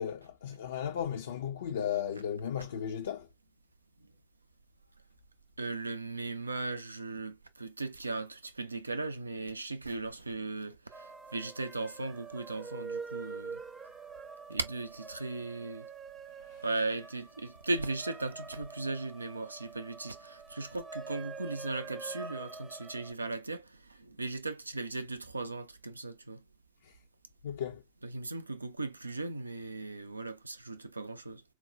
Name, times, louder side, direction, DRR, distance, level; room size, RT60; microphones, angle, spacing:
voice 1, 0.0-3.3 16.4-16.6 26.8-27.0 27.4-27.8, left 9 dB, 65° left, 0.4 m, -35 dB
voice 2, 5.6-13.6 14.5-15.9 16.6-26.4 28.0-31.4, right 3 dB, 80° right, 0.4 m, -37 dB
sound 1, 10.9-23.1, right 4 dB, 10° right, 0.4 m, -45 dB
4.3 x 2.0 x 2.5 m
figure-of-eight pair, 90°, 0 cm